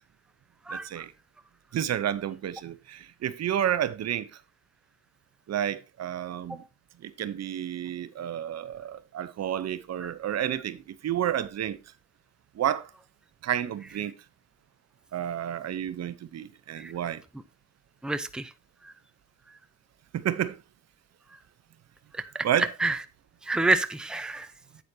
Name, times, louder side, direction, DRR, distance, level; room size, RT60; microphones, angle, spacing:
voice 1, 0.7-1.1 1.7-4.4 5.5-6.6 7.0-11.8 12.5-12.9 13.4-14.1 15.1-17.2 20.1-20.6 22.4-22.7, right 10 dB, 60° right, 0.8 m, -30 dB
voice 2, 18.0-18.5 18.8-18.9 22.1-22.5 22.8-23.0 23.5-24.5, right 2 dB, 5° right, 0.7 m, -28 dB
9.9 x 8.3 x 2.8 m
cardioid pair, 90°, 30 cm